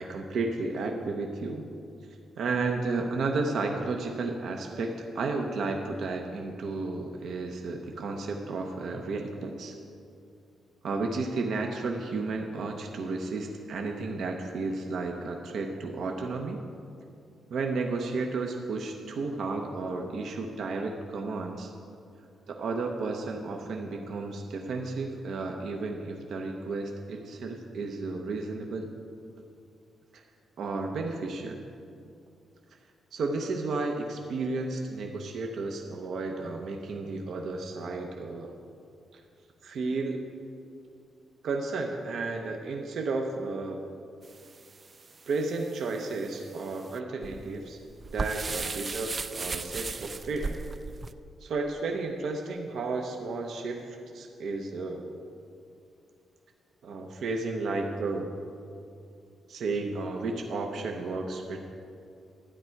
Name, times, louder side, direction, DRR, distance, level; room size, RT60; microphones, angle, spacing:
voice 1, 0.0-1.6 2.4-9.7 10.8-16.6 17.5-21.7 22.5-28.9 30.1-30.2 30.6-31.6 33.1-38.5 39.6-40.2 41.4-43.8 45.3-47.8 48.1-50.6 51.4-55.0 56.8-58.3 59.5-61.6, right 3 dB, 65° right, 2 dB, 0.8 m, -32 dB
sound 1, 44.2-51.1, right 4 dB, 30° right, 0.3 m, -37 dB
12.5 x 9.8 x 4.6 m, 2.4 s
cardioid pair, 145°, 0 cm